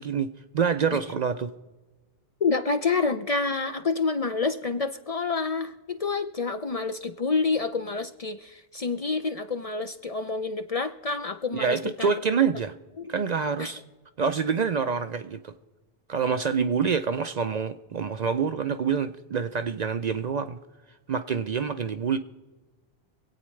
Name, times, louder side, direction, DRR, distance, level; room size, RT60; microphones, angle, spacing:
voice 1, 0.0-1.5 11.5-12.7 13.1-13.8 14.2-15.5 16.1-20.6 21.1-22.2, right 6 dB, 55° right, 10 dB, 0.5 m, -26 dB
voice 2, 2.4-12.2 13.0-13.1 13.6-13.7, left 4 dB, 45° left, 9 dB, 0.5 m, -28 dB
26.0 x 8.7 x 3.2 m, 1.3 s
omnidirectional pair, 1.0 m